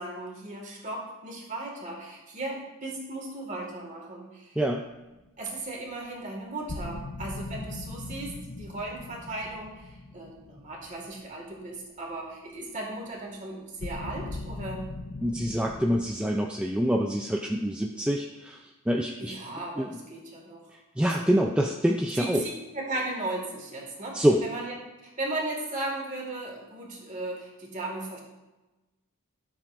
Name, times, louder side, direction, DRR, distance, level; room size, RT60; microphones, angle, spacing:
voice 1, 0.0-4.6 5.4-14.8 19.2-21.3 22.1-24.8 25.0-28.2, right 2 dB, 35° right, -1 dB, 2.0 m, -36 dB
sound 1, 4.9-5.0 5.3-5.4 6.7-11.7 13.8-16.0, left 2 dB, 70° left, 0.8 m, -39 dB
voice 2, 15.2-19.4 19.8-19.9 21.0-22.5 24.1-24.5, equal, 5° right, 0 dB, 0.4 m, -26 dB
13.0 x 7.4 x 2.6 m, 1.1 s
head